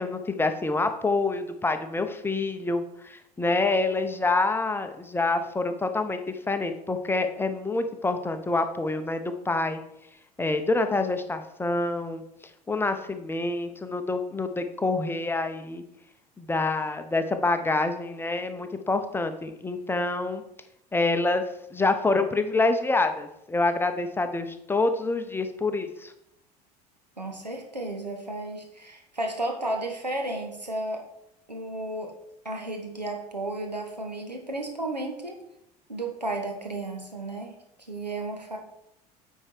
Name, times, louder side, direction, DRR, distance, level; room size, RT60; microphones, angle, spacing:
voice 1, 0.0-9.8 10.4-12.2 12.7-15.8 16.4-20.4 20.9-21.4 21.7-26.1, left 3 dB, 10° left, 7 dB, 0.8 m, -27 dB
voice 2, 27.2-31.0 31.5-32.1 32.4-35.4 35.9-37.5 37.9-38.6, right 2 dB, 90° right, 2 dB, 1.2 m, -33 dB
8.9 x 4.7 x 4.6 m, 0.79 s
figure-of-eight pair, 70°, 21 cm